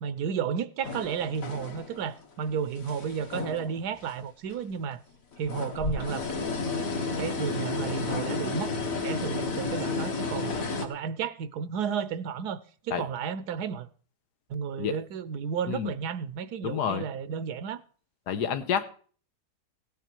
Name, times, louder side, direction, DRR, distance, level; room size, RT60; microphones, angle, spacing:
voice 1, 0.0-5.0 5.4-6.3 7.2-8.7 9.0-13.9 14.5-17.8, right 7 dB, 80° right, 1.3 m, -32 dB
sound 1, 0.8-2.1 2.5-4.1 4.5-4.6 5.3-10.9, left 3 dB, 60° left, 1.8 m, -32 dB
voice 2, 16.6-17.0 18.3-18.8, left 8 dB, 90° left, 1.6 m, -28 dB
16.0 x 9.0 x 4.5 m
omnidirectional pair, 1.7 m